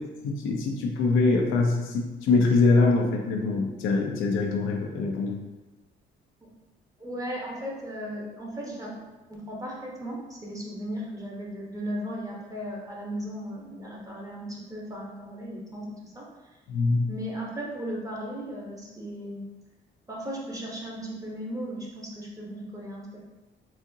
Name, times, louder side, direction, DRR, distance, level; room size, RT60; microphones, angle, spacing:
voice 1, 0.2-5.3 16.7-17.1, left 3 dB, 90° left, 1 dB, 0.6 m, -23 dB
voice 2, 7.0-9.0 9.3-16.3 17.1-19.4 20.1-23.2, equal, 15° right, -3 dB, 1.0 m, -36 dB
4.1 x 2.5 x 2.7 m, 1.1 s
cardioid pair, 90°, 20 cm